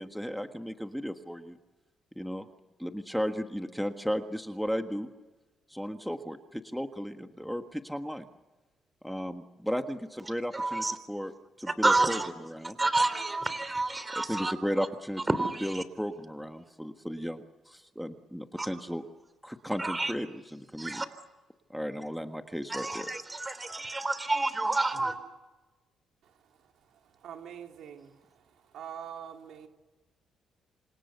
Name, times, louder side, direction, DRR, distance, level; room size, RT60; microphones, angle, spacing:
voice 1, 0.0-1.6 2.2-2.4 2.8-5.1 5.7-8.3 9.0-12.8 14.1-15.3 15.6-19.0 19.4-21.0 21.7-23.1, equal, ahead, 6 dB, 1.5 m, -35 dB
voice 2, 10.5-11.0 11.7-12.3 12.8-14.5 15.3-15.8 18.6-18.7 19.8-20.1 20.8-21.1 22.7-25.2, right 2 dB, 20° right, 12 dB, 3.3 m, -29 dB
voice 3, 27.2-28.2 28.7-29.7, right 9 dB, 75° right, 3 dB, 3.5 m, -43 dB
28.5 x 26.5 x 6.9 m, 1.2 s
cardioid pair, 90°, 0 cm